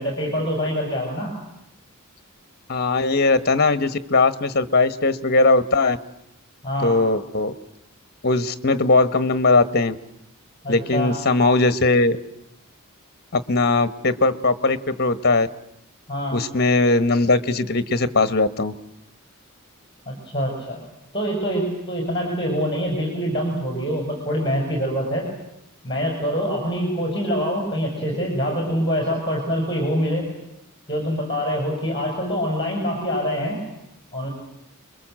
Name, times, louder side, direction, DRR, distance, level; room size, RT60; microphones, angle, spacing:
voice 1, 0.0-1.3 6.6-7.0 10.6-11.1 16.1-16.4 20.1-20.8 21.1-25.3 25.8-30.3 30.9-33.6 34.1-34.3, equal, 20° left, 1 dB, 5.6 m, -25 dB
voice 2, 2.7-6.0 6.8-7.5 8.2-10.0 10.7-12.2 13.3-15.5 16.3-18.7, left 3 dB, 45° left, 12 dB, 1.2 m, -19 dB
29.0 x 22.5 x 7.7 m, 0.83 s
head